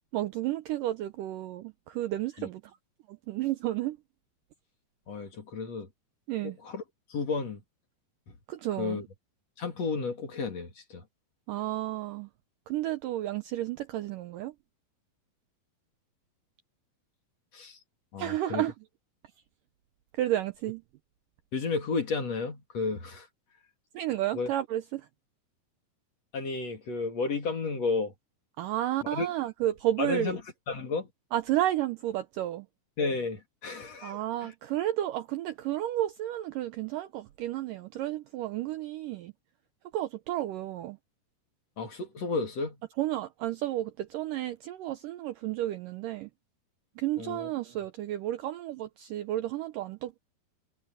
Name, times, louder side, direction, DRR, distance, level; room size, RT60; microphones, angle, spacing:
voice 1, 0.1-2.6 3.1-4.0 6.3-6.6 8.5-9.0 11.5-12.3 12.7-14.5 18.2-18.7 20.1-20.8 23.9-25.1 28.6-30.3 31.3-32.7 34.0-39.3 39.9-41.0 43.0-46.3 47.0-50.2, right 14 dB, 75° right, 2.0 m, -32 dB
voice 2, 5.1-5.9 6.4-6.8 7.1-7.6 8.8-9.0 9.6-11.0 17.5-17.8 18.1-18.6 21.5-23.3 24.3-24.5 26.3-28.1 29.0-29.3 30.0-30.4 30.7-31.1 33.0-34.5 41.8-42.8 47.2-47.5, left 4 dB, 45° left, 3.2 m, -32 dB
omnidirectional pair, 4.6 m